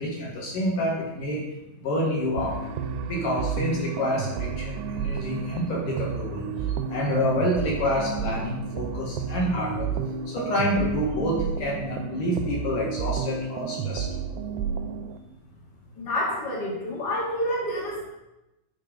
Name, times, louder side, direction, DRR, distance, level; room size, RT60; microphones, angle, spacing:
voice 1, 0.0-1.4 1.8-2.5 3.1-6.4 6.9-9.9 10.3-14.0, left 1 dB, 60° left, -4 dB, 2.8 m, -27 dB
sound 1, 2.4-15.2, right 7 dB, 90° right, 2.7 m, -31 dB
voice 2, 15.9-18.1, equal, 35° left, -3 dB, 1.7 m, -28 dB
8.8 x 4.6 x 5.2 m, 0.94 s
omnidirectional pair, 4.8 m